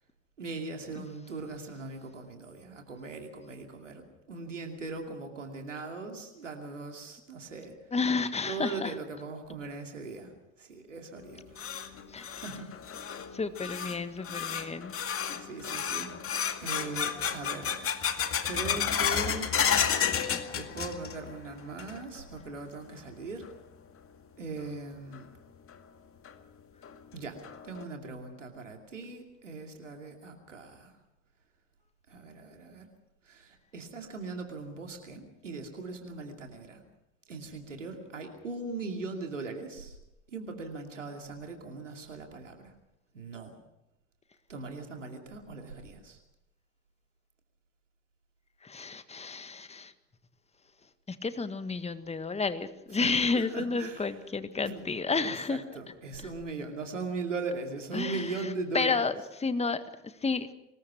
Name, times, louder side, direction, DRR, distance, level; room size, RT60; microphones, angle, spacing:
voice 1, 0.4-7.8 8.5-10.3 10.6-11.6 12.4-12.7 15.4-16.1 16.6-17.9 18.4-19.6 20.5-23.5 24.4-25.3 27.1-27.4 27.6-30.9 32.1-32.9 33.2-36.8 37.3-40.0 40.3-42.7 43.1-43.6 44.5-46.2 53.0-54.1 54.6-54.8 55.1-59.0, right 3 dB, 85° right, 4 dB, 2.6 m, -39 dB
voice 2, 7.9-8.9 12.1-12.4 13.3-14.9 48.6-49.9 51.1-55.6 56.2-56.3 57.9-60.5, left 4 dB, 15° left, 11 dB, 1.6 m, -31 dB
sound 1, 11.2-21.3 21.6-22.2 22.6-22.7 23.4-23.5 25.1-25.2 25.7-25.8 26.3-26.4 26.8-26.9 27.4-27.8, left 8 dB, 35° left, 2.2 m, -32 dB
24.5 x 20.5 x 6.1 m, 0.88 s
figure-of-eight pair, 60°, 36 cm